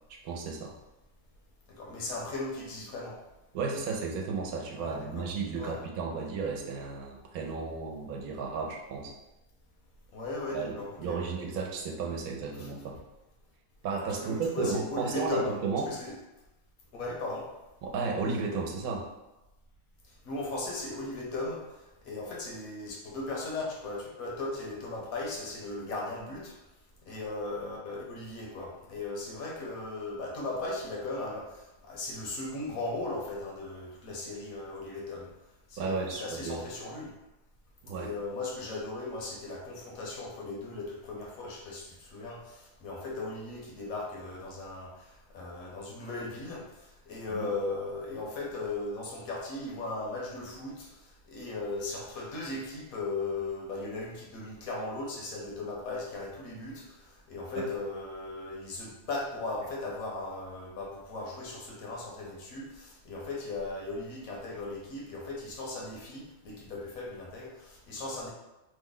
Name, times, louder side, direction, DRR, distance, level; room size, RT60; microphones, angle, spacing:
voice 1, 0.2-0.7 3.5-9.1 10.5-13.0 13.8-15.9 17.8-19.1 35.8-36.6 37.8-38.1 47.3-47.5 57.6-57.7, right 4 dB, 85° right, 0 dB, 1.1 m, -33 dB
voice 2, 1.7-3.2 4.8-5.2 5.6-5.8 10.1-11.3 12.6-12.7 14.2-15.6 15.9-16.1 16.9-17.5 20.2-21.6 22.0-26.5 27.1-35.3 35.7-37.1 37.9-68.3, left 2 dB, 75° left, -2 dB, 1.2 m, -37 dB
3.2 x 2.1 x 3.6 m, 1.0 s
omnidirectional pair, 1.5 m